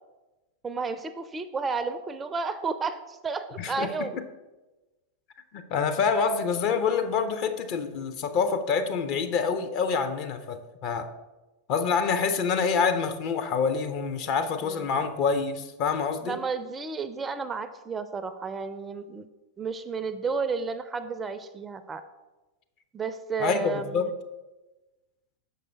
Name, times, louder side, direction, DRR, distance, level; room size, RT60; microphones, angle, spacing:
voice 1, 0.6-4.2 14.6-14.9 16.2-19.3 19.6-22.0 22.9-24.1, right 4 dB, 15° right, 11 dB, 0.4 m, -32 dB
voice 2, 3.6-4.1 5.5-11.1 11.7-16.4 23.4-24.1, left 5 dB, 40° left, 8 dB, 0.6 m, -27 dB
6.4 x 5.4 x 4.3 m, 1.1 s
figure-of-eight pair, 90°, 0 cm